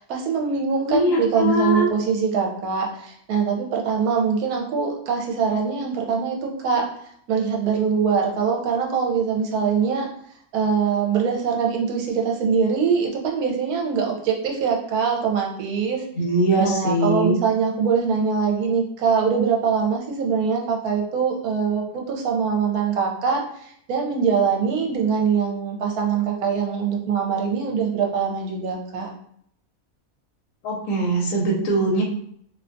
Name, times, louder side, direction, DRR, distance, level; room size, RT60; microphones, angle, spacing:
voice 1, 0.0-6.9 7.3-10.1 10.5-16.0 16.6-29.1, right 6 dB, 75° right, 1 dB, 1.1 m, -23 dB
voice 2, 0.9-1.9 16.2-17.4 30.6-32.0, right 1 dB, 65° left, -1 dB, 1.0 m, -21 dB
2.6 x 2.2 x 2.5 m, 0.67 s
omnidirectional pair, 1.6 m